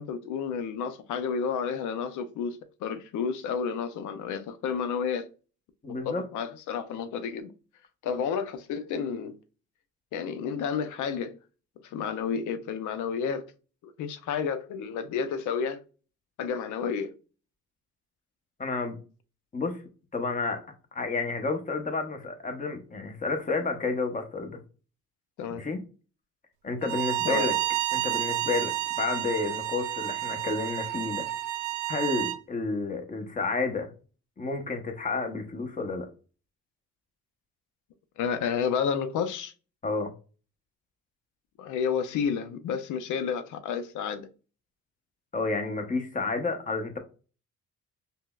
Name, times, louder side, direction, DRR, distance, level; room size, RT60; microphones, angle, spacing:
voice 1, 0.0-5.3 6.0-7.5 8.0-9.4 10.1-11.4 11.8-13.5 13.8-15.8 16.4-17.1 25.4-25.6 27.2-27.5 38.2-39.5 41.6-44.3, left 6 dB, 80° left, 0.5 m, -31 dB
voice 2, 5.8-6.2 18.6-19.0 19.5-19.8 20.1-20.6 20.9-24.6 25.5-25.8 26.6-27.6 27.9-31.3 31.9-33.9 34.4-36.1 39.8-40.1 45.3-47.0, left 3 dB, 25° left, 0.8 m, -30 dB
Bowed string instrument, 26.8-32.4, right 14 dB, 70° right, 0.4 m, -30 dB
5.3 x 2.0 x 2.3 m
cardioid pair, 90°, 30 cm